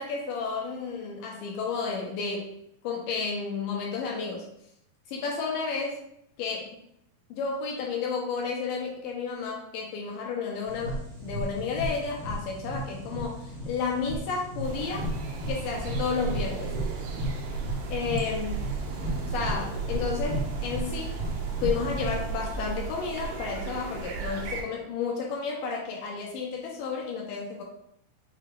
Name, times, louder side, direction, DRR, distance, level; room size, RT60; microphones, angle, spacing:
voice 1, 0.0-2.5 2.8-4.5 5.1-6.0 6.4-6.8 7.3-15.1 15.5-16.7 17.9-18.5 19.3-21.1 21.6-27.6, left 5 dB, 80° left, -1 dB, 2.1 m, -32 dB
sound 1, 10.7-22.3, right 1 dB, 60° right, 1.2 m, -34 dB
sound 2, 14.6-24.6, right 5 dB, 80° right, 2.5 m, -35 dB
6.5 x 2.3 x 3.3 m, 0.73 s
omnidirectional pair, 4.3 m